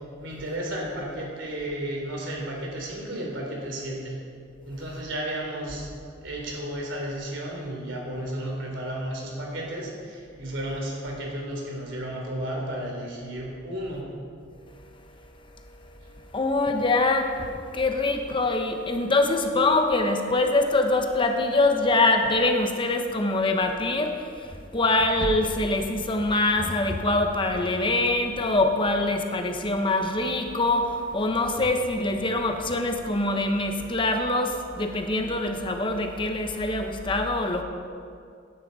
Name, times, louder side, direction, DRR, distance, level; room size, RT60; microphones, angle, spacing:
voice 1, 0.2-4.2 4.6-5.9 6.2-14.0, right 1 dB, 75° right, -1 dB, 3.2 m, -33 dB
voice 2, 14.6-37.6, left 2 dB, 25° left, 4 dB, 0.8 m, -24 dB
16.0 x 9.7 x 4.0 m, 2.3 s
head